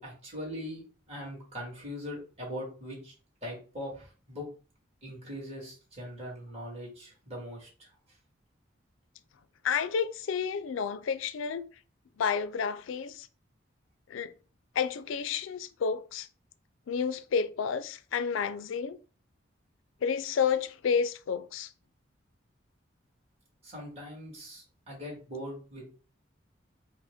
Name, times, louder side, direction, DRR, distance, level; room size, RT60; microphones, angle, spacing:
voice 1, 0.0-3.1 3.4-4.5 5.0-7.9 23.6-25.8, equal, 30° right, 1.9 m, -41 dB
voice 2, 9.6-11.7 12.2-13.3 14.1-14.3 14.8-16.3 16.9-19.0 20.0-21.7, left 6 dB, 85° left, 0.4 m, -30 dB
4.9 x 2.1 x 3.5 m
head